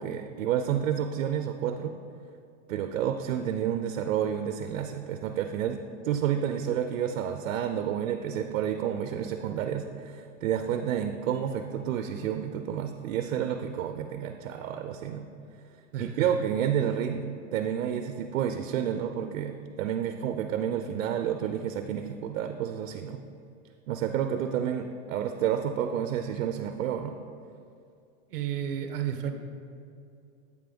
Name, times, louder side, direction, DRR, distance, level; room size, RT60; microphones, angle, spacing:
voice 1, 0.0-1.9 2.7-5.8 6.0-15.3 16.0-23.2 23.9-27.2, right 9 dB, 90° right, 7 dB, 0.5 m, -30 dB
voice 2, 15.9-16.3 28.3-29.3, right 9 dB, 45° right, 6 dB, 0.6 m, -32 dB
8.2 x 3.4 x 5.2 m, 2.5 s
supercardioid pair, 175°, 38 cm